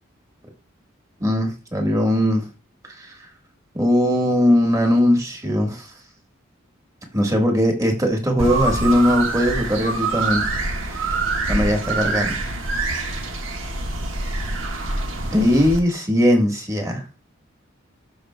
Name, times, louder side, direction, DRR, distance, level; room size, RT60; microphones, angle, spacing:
voice 1, 1.2-2.5 2.8-3.1 3.7-5.9 7.1-10.4 10.9-11.2 11.5-12.3 15.3-17.0, left 1 dB, 15° right, 2 dB, 1.4 m, -19 dB
sound 1, 8.4-15.8, right 3 dB, 90° right, 1.4 m, -25 dB
13.0 x 5.1 x 2.2 m, 0.33 s
head